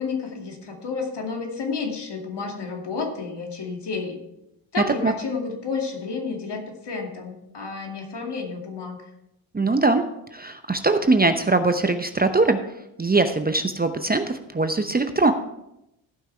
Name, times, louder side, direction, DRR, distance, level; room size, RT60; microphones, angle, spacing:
voice 1, 0.0-4.2 4.7-9.0, left 4 dB, 55° left, 2 dB, 2.5 m, -31 dB
voice 2, 9.5-12.6 13.0-15.3, right 3 dB, 20° right, 8 dB, 0.8 m, -21 dB
15.0 x 5.9 x 4.4 m, 0.85 s
supercardioid pair, 55°, 50 cm